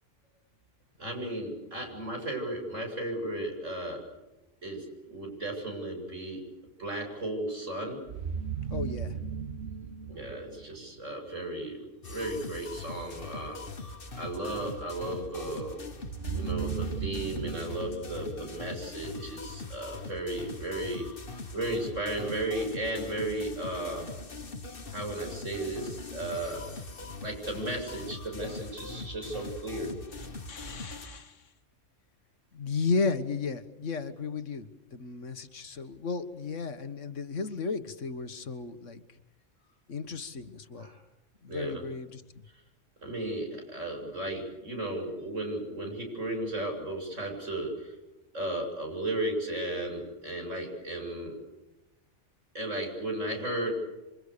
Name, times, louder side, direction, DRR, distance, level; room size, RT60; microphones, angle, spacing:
voice 1, 1.0-4.0 4.6-6.4 6.8-8.0 10.1-13.6 14.2-15.8 16.3-21.1 21.5-24.1 24.9-26.6 27.2-29.9 40.8-41.0 41.5-41.8 43.0-47.9 48.3-51.3 52.5-53.7, right 1 dB, 90° right, 2 dB, 8.0 m, -35 dB
sound 1, 8.1-11.1 16.0-19.2, right 6 dB, 60° right, 1.4 m, -36 dB
voice 2, 8.7-9.2 30.2-31.4 32.5-39.0 39.9-40.9 41.4-42.2, left 4 dB, 80° left, 10 dB, 1.8 m, -34 dB
sound 2, 12.0-31.1, left 3 dB, 50° left, 1.7 m, -42 dB
27.5 x 25.5 x 6.8 m, 1.0 s
omnidirectional pair, 1.3 m